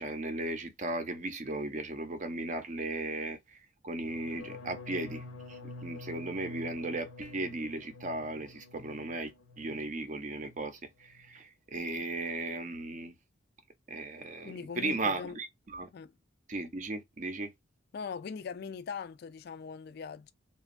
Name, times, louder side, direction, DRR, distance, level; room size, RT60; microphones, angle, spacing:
voice 1, 0.0-13.1 13.9-15.9 16.5-17.5, right 2 dB, 40° right, 0.6 m, -36 dB
sound 1, 4.0-9.9 10.2-10.7 11.0-11.4, left 3 dB, 90° left, 0.7 m, -48 dB
voice 2, 14.4-15.4 15.9-16.1 17.9-20.3, left 6 dB, 55° left, 0.3 m, -41 dB
2.9 x 2.2 x 2.4 m
head